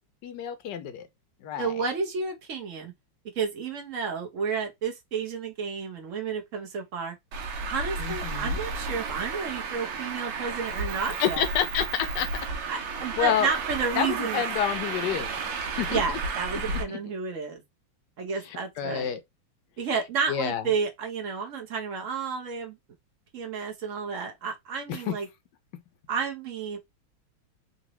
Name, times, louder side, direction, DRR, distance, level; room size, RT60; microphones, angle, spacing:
voice 1, 0.2-1.1 1.4-1.7 8.0-8.6 11.2-12.5 13.2-13.5 14.0-15.3 15.8-16.0 16.7-17.0 18.5-19.2 20.3-20.6 24.9-25.1, left 9 dB, 70° left, 1.1 m, -29 dB
voice 2, 1.6-2.9 3.4-7.1 7.6-11.4 12.7-14.4 15.9-17.6 18.2-19.1 19.8-22.8 23.3-25.3 26.1-26.8, right 5 dB, 55° right, 0.9 m, -31 dB
Traffic noise roadway noise, 7.3-16.8, right 4 dB, 85° right, 1.5 m, -32 dB
3.9 x 2.6 x 3.0 m
omnidirectional pair, 2.2 m